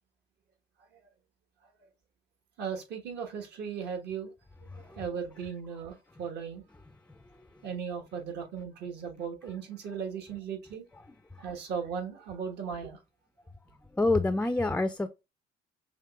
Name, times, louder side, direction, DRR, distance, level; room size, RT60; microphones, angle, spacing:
voice 1, 2.6-4.3 4.7-6.6 7.6-10.8 11.4-13.0, right 7 dB, 65° right, 1.2 m, -37 dB
voice 2, 14.0-15.1, left 2 dB, 5° left, 0.3 m, -26 dB
5.9 x 3.0 x 2.3 m
supercardioid pair, 65°, 19 cm